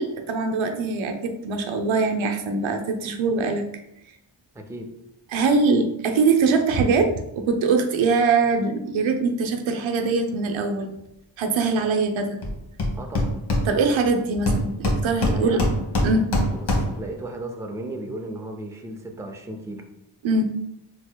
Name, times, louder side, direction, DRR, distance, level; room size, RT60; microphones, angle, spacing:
voice 1, 0.0-3.6 5.3-10.9 11.4-12.4 13.7-15.6 16.0-16.2 20.2-20.4, right 4 dB, 85° right, 4 dB, 0.6 m, -22 dB
voice 2, 4.5-4.9 13.0-13.4 15.2-15.7 16.6-16.7 16.9-19.9, right 1 dB, 5° right, 3 dB, 0.4 m, -34 dB
Hammer, 12.4-12.5 12.8-14.1 14.5-17.1, left 1 dB, 60° left, 1.1 m, -23 dB
4.1 x 2.8 x 2.2 m, 0.83 s
cardioid pair, 80°, 46 cm